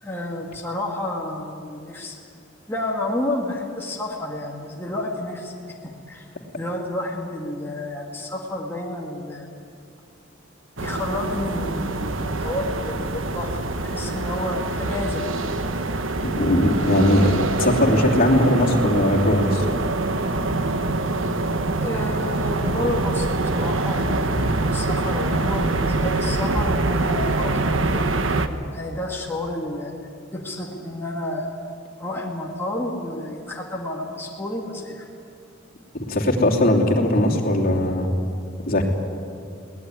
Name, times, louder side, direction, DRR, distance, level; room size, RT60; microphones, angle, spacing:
voice 1, 0.0-2.2 2.7-6.3 6.6-9.5 10.8-15.3 15.7-15.9 21.8-28.0 28.7-29.9 30.3-31.5 32.0-35.1, left 1 dB, 10° left, -3 dB, 2.1 m, -30 dB
sound 1, 10.8-28.5, right 2 dB, 85° right, 1.3 m, -24 dB
voice 2, 16.2-17.3 17.6-19.6 35.9-38.1 38.7-38.8, left 1 dB, 50° left, -1 dB, 3.0 m, -19 dB
22.5 x 18.5 x 9.8 m, 2.5 s
head